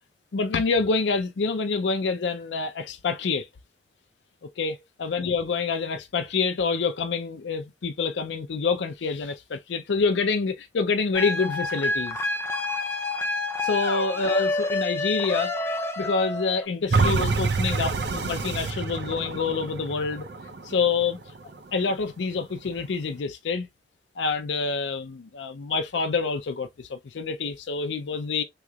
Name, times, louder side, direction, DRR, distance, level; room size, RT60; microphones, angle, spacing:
voice 1, 0.3-3.5 4.6-12.2 13.6-15.5 16.0-20.3 20.6-21.2 21.7-23.7 24.2-28.4, left 4 dB, 80° left, 0.5 m, -27 dB
sound 1, 11.1-16.7, left 2 dB, 15° left, 0.4 m, -28 dB
sound 2, 16.9-21.9 22.4-22.5, right 4 dB, 65° right, 0.5 m, -27 dB
3.7 x 3.1 x 2.3 m
head